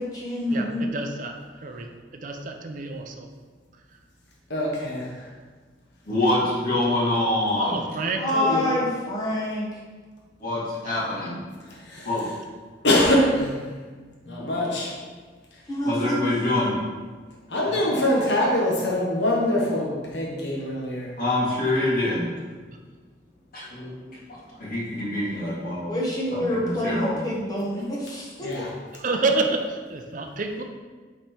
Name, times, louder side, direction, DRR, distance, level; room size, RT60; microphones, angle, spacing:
voice 1, 0.0-0.9 8.2-9.8 15.7-16.3 25.9-28.6, left 1 dB, 20° left, -5 dB, 1.0 m, -27 dB
voice 2, 0.5-1.9 2.1-3.3 7.6-8.3 10.9-11.0 17.7-17.9 29.0-30.6, right 3 dB, 45° right, 4 dB, 0.5 m, -28 dB
voice 3, 4.5-5.3 8.3-8.7 11.7-12.1 12.8-13.6 14.3-15.0 15.5-15.6 17.5-21.1 28.4-28.7, left 1 dB, 65° left, -3 dB, 1.3 m, -24 dB
voice 4, 6.1-7.8 10.4-11.4 12.0-12.3 14.2-14.5 15.8-16.8 21.2-22.3 23.5-25.9 26.3-27.2, left 1 dB, 50° left, -7 dB, 1.8 m, -26 dB
5.2 x 4.3 x 4.4 m, 1.4 s
head